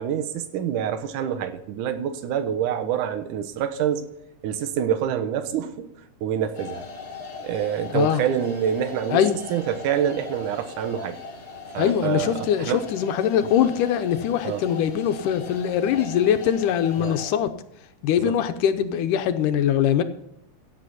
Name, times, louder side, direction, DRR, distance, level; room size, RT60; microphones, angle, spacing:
voice 1, 0.0-4.0 4.4-5.9 6.2-6.8 7.4-9.2 9.5-11.2 11.7-12.8 14.4-14.6 17.0-17.2 18.2-18.3, right 9 dB, 80° right, 2.5 m, -26 dB
sound 1, 6.5-17.3, left 4 dB, 35° left, 1.9 m, -40 dB
voice 2, 11.8-17.5 18.0-20.0, left 9 dB, 80° left, 2.4 m, -22 dB
16.0 x 7.9 x 4.2 m
omnidirectional pair, 3.7 m